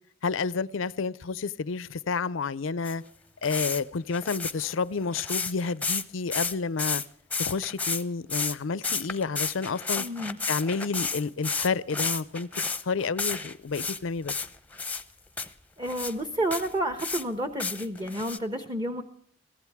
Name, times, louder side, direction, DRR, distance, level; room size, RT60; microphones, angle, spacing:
voice 1, 0.2-3.0 3.4-7.0 7.4-10.0 10.5-12.5 12.9-14.3, left 4 dB, 80° left, 0.5 m, -30 dB
sound 1, 2.8-2.9 3.4-3.8 4.1-6.0 6.3-7.1 7.3-8.0 8.3-8.6 8.8-14.0 14.3-15.0 15.4-15.5 15.9-16.1 16.5-17.2 17.6-18.4, left 4 dB, 10° left, 0.8 m, -31 dB
voice 2, 10.0-10.4 15.4-15.5 15.8-19.0, right 1 dB, 25° right, 1.0 m, -30 dB
23.0 x 15.5 x 3.5 m
head